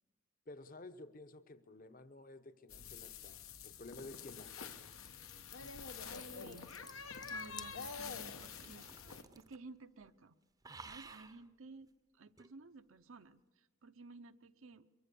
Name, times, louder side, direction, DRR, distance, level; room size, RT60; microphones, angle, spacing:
voice 1, 0.5-4.9, left 2 dB, 40° left, 0.9 m, -53 dB
sound 1, 2.7-9.2, left 5 dB, 90° left, 1.4 m, -47 dB
sound 2, 4.0-9.8 10.0-10.3 10.6-11.4 12.4-12.5, right 4 dB, 20° right, 0.6 m, -58 dB
sound 3, 4.7-8.9, left 6 dB, 20° left, 0.8 m, -55 dB
voice 2, 6.0-8.9 9.3-10.4 10.9-14.9, right 3 dB, 75° right, 0.8 m, -55 dB
23.5 x 22.5 x 6.9 m
head